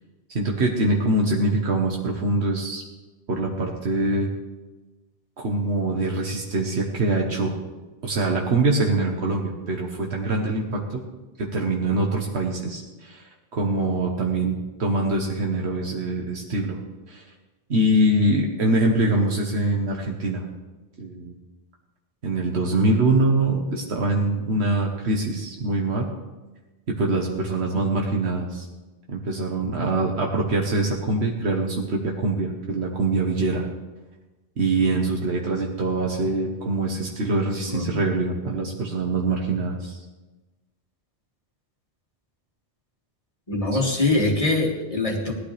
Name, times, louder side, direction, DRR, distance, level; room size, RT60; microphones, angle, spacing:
voice 1, 0.3-2.8 3.3-4.3 5.4-7.5 8.0-11.0 11.4-16.8 17.1-17.2 17.7-20.4 21.0-21.3 22.2-26.1 26.9-28.7 29.1-33.7 34.6-40.0 43.7-43.8, right 2 dB, 85° right, 0 dB, 1.5 m, -24 dB
voice 2, 37.7-38.0 43.5-45.3, left 2 dB, 35° left, 1 dB, 1.9 m, -23 dB
17.5 x 12.0 x 3.4 m, 1.1 s
omnidirectional pair, 1.1 m